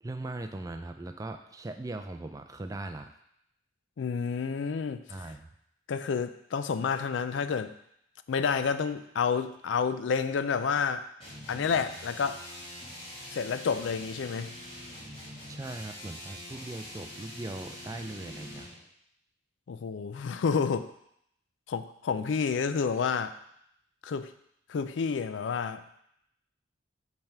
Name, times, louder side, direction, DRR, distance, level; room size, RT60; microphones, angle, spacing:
voice 1, 0.0-3.1 5.1-5.5 15.5-18.7, right 2 dB, 15° right, 7 dB, 0.3 m, -39 dB
voice 2, 4.0-5.0 5.9-7.7 8.3-11.0 11.5-12.4 13.3-14.5 19.7-20.9 21.7-23.4 24.0-24.3 24.7-26.0, left 6 dB, 70° left, 11 dB, 0.4 m, -29 dB
sound 1, 11.2-18.8, left 1 dB, 30° left, 1.9 m, -44 dB
5.5 x 3.4 x 5.8 m, 0.75 s
head